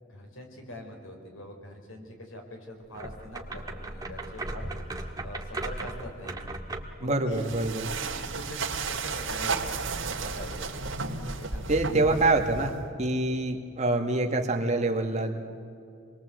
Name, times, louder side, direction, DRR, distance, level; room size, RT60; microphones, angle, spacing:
voice 1, 0.1-4.7 5.0-6.5 7.0-7.5 8.0-9.6 10.2-10.6 11.4-11.8, left 1 dB, 90° left, 2 dB, 4.8 m, -43 dB
sound 1, 2.9-7.0, right 2 dB, 20° right, 1.7 m, -37 dB
voice 2, 7.0-7.9 11.7-15.4, right 2 dB, 35° right, 4 dB, 1.9 m, -26 dB
sound 2, 7.3-12.9, right 4 dB, 75° right, 2.3 m, -33 dB
26.0 x 21.5 x 7.9 m, 2.5 s
head